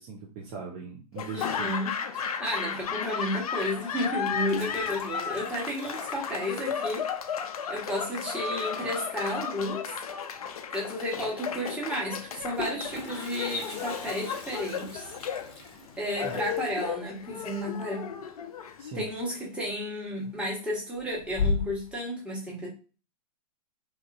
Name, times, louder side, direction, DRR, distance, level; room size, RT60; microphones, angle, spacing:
voice 1, 0.0-1.7 16.2-16.3 18.8-19.1, right 5 dB, 35° right, -1 dB, 0.5 m, -40 dB
Laughter / Applause, 1.1-19.2, left 7 dB, 65° left, 0.4 m, -34 dB
voice 2, 1.3-1.9 2.4-7.4 7.7-9.8 10.7-15.1 16.0-18.1 18.9-22.7, equal, 5° right, -5 dB, 1.1 m, -32 dB
Toilet flush, 2.8-2.9 4.1-7.0 7.2-7.3 7.6-7.7 8.0-8.4 10.1-10.2 10.5-10.6 12.2-18.9 19.1-19.6 20.0-20.5 20.9-21.9, left 4 dB, 30° left, 0.8 m, -37 dB
3.0 x 2.4 x 2.4 m, 0.35 s
figure-of-eight pair, 105°, 20 cm